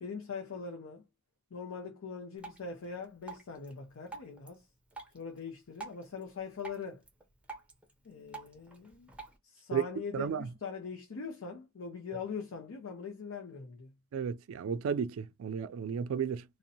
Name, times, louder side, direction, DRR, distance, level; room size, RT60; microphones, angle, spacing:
voice 1, 0.0-1.0 1.5-4.7 5.1-7.0 8.0-9.1 9.4-13.9, left 5 dB, 80° left, 0.5 m, -42 dB
Drip, 2.4-9.4, right 4 dB, 5° right, 0.6 m, -50 dB
voice 2, 10.1-10.5 14.1-16.4, right 7 dB, 70° right, 0.3 m, -33 dB
2.6 x 2.1 x 2.6 m
head